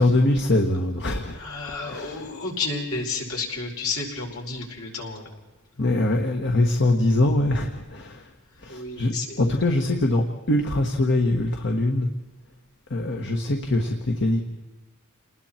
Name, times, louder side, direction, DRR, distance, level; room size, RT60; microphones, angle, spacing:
voice 1, 0.0-1.4 1.9-2.0 5.8-8.2 8.6-12.1 12.9-14.4, left 1 dB, 55° left, 3 dB, 1.5 m, -22 dB
voice 2, 1.3-5.3 8.6-9.4, left 3 dB, 70° left, 0 dB, 5.1 m, -31 dB
29.5 x 20.0 x 4.4 m, 1.1 s
head